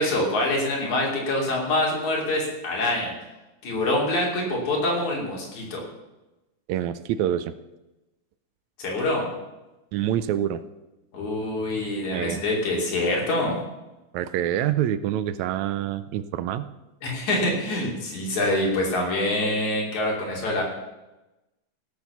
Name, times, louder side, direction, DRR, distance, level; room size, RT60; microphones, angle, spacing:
voice 1, 0.0-3.1 3.6-5.8 8.8-9.2 11.1-13.5 17.0-20.6, left 1 dB, 75° left, -2 dB, 4.5 m, -25 dB
voice 2, 6.7-7.5 9.9-10.6 12.1-12.4 14.1-16.7, right 11 dB, 80° right, 13 dB, 1.9 m, -26 dB
16.5 x 6.8 x 7.0 m, 1.0 s
omnidirectional pair, 3.4 m